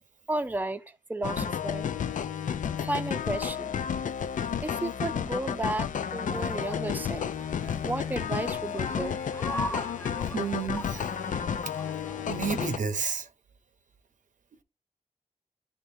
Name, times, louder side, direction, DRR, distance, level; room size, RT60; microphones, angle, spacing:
voice 1, 0.3-0.8 1.1-1.9 2.8-3.8 4.6-7.3 7.8-9.2, right 2 dB, 15° right, 0.6 m, -33 dB
sound 1, 1.2-12.8, left 8 dB, 90° left, 0.4 m, -32 dB
sound 2, 6.7-12.4, left 1 dB, 20° left, 0.7 m, -40 dB
voice 2, 10.3-11.0 12.3-13.3, right 6 dB, 80° right, 0.8 m, -31 dB
10.0 x 3.5 x 2.7 m
wide cardioid pair, 70°, 13 cm